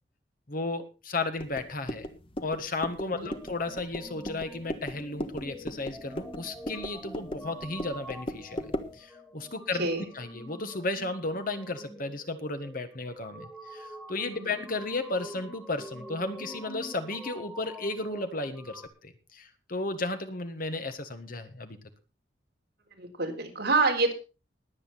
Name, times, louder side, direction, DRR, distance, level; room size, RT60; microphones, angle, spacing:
voice 1, 0.5-2.1 2.4-9.9 10.1-21.8, left 2 dB, 45° left, 9 dB, 1.6 m, -34 dB
sound 1, 1.4-9.0, equal, 30° left, 1.3 m, -38 dB
sound 2, 3.2-18.9, equal, 5° left, 1.8 m, -46 dB
voice 2, 23.0-24.1, right 3 dB, 55° right, 2 dB, 3.9 m, -27 dB
20.5 x 8.4 x 4.2 m, 0.32 s
head